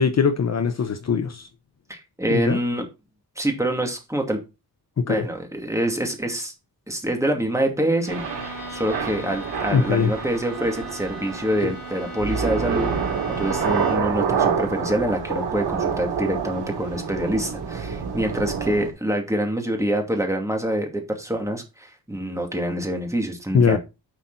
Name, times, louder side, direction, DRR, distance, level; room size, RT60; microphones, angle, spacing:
voice 1, 0.0-1.5 2.3-2.6 5.0-5.3 9.7-10.1 11.6-11.7 23.5-23.8, left 6 dB, 40° left, 0.9 m, -21 dB
voice 2, 1.9-2.9 3.4-4.4 5.1-6.5 6.9-8.2 8.7-23.8, right 1 dB, 10° right, 2.4 m, -26 dB
Bowed string instrument, 8.0-14.2, equal, 25° left, 5.2 m, -38 dB
Thunder / Rain, 8.1-18.9, right 6 dB, 75° right, 3.1 m, -27 dB
10.0 x 5.9 x 4.0 m
wide cardioid pair, 120°, 39 cm